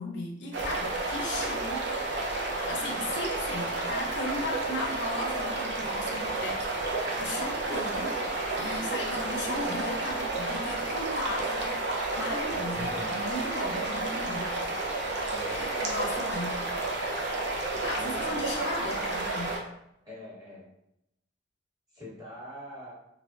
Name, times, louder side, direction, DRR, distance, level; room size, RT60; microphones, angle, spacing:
voice 1, 0.0-1.9 2.6-6.9 7.2-8.1 8.6-11.8 12.2-14.5 15.5-16.5 17.8-19.5, left 1 dB, 65° left, -1 dB, 0.5 m, -36 dB
sound 1, 0.5-19.6, right 2 dB, 65° right, 0.5 m, -31 dB
voice 2, 12.5-13.2 15.3-16.1 17.5-17.6 18.0-18.6 20.0-20.7 21.9-22.9, left 1 dB, 20° right, -7 dB, 1.2 m, -43 dB
3.2 x 2.2 x 2.4 m, 0.81 s
head